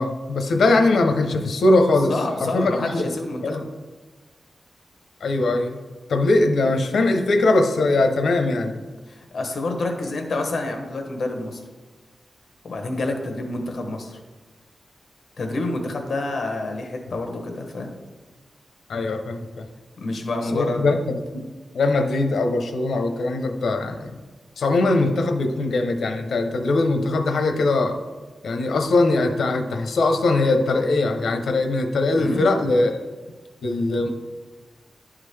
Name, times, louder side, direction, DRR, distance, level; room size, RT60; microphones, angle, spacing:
voice 1, 0.0-2.1 2.4-3.1 3.4-3.6 5.2-5.8 6.1-8.8 18.9-19.7 20.5-21.0 21.3-21.5 21.7-24.1 24.6-28.0 28.4-33.0 33.6-34.1, left 2 dB, 85° left, 5 dB, 0.7 m, -21 dB
voice 2, 2.1-3.7 9.1-11.6 12.6-14.2 15.4-17.9 20.0-21.0 32.2-32.5, left 2 dB, 60° left, 3 dB, 1.1 m, -28 dB
11.0 x 3.7 x 3.3 m, 1.3 s
wide cardioid pair, 140°, 0 cm